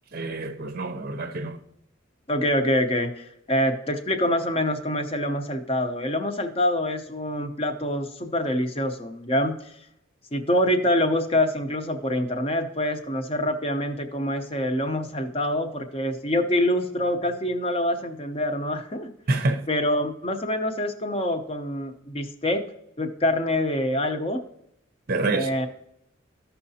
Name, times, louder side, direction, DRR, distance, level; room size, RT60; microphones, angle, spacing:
voice 1, 0.1-1.6 19.3-19.6 25.1-25.5, right 2 dB, 45° right, 0.6 m, -27 dB
voice 2, 2.3-9.7 10.3-19.1 19.7-22.6 23.0-24.4 25.3-25.7, left 1 dB, 30° left, 0.7 m, -25 dB
14.5 x 5.6 x 2.8 m
head